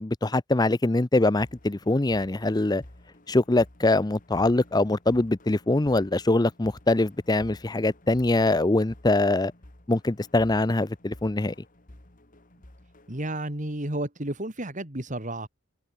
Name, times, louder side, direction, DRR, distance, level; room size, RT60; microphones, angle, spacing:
voice 1, 0.0-2.8 3.3-9.5 9.9-11.5, left 2 dB, 20° left, 0.6 m, -23 dB
sound 1, 1.4-13.4, left 1 dB, 40° left, 2.3 m, -52 dB
voice 2, 13.1-15.5, right 1 dB, 35° right, 2.9 m, -32 dB
head